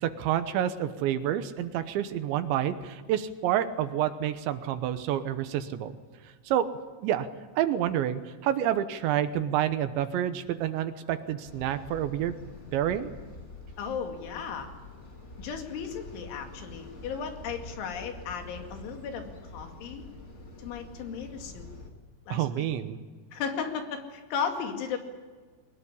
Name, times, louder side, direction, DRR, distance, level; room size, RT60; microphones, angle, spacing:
voice 1, 0.0-5.9 6.5-6.7 7.0-7.3 7.6-12.4 12.7-13.1 22.3-23.0, right 11 dB, 75° right, 10 dB, 3.2 m, -28 dB
sound 1, 11.4-21.9, left 2 dB, 40° left, 1.0 m, -46 dB
voice 2, 13.8-14.7 15.4-19.3 19.5-20.0 20.6-21.7 22.3-22.7 23.3-25.0, left 6 dB, 75° left, 4 dB, 4.7 m, -35 dB
22.5 x 20.0 x 9.8 m, 1.4 s
omnidirectional pair, 5.5 m